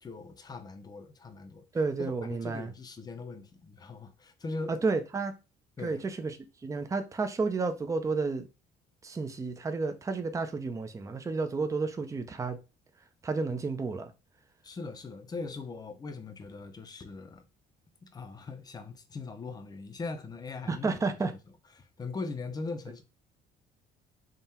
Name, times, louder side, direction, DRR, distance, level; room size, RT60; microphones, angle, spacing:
voice 1, 0.0-1.7 2.0-4.8 5.8-6.1 14.6-17.5 18.0-21.0 21.3-21.4 21.8-23.0, left 3 dB, 25° left, 0.7 m, -40 dB
voice 2, 1.7-2.7 4.7-5.3 5.8-6.4 6.6-8.5 9.0-12.6 13.2-14.1 20.7-21.3, right 4 dB, 20° right, 0.5 m, -31 dB
3.7 x 2.3 x 4.2 m
cardioid pair, 110°, 17 cm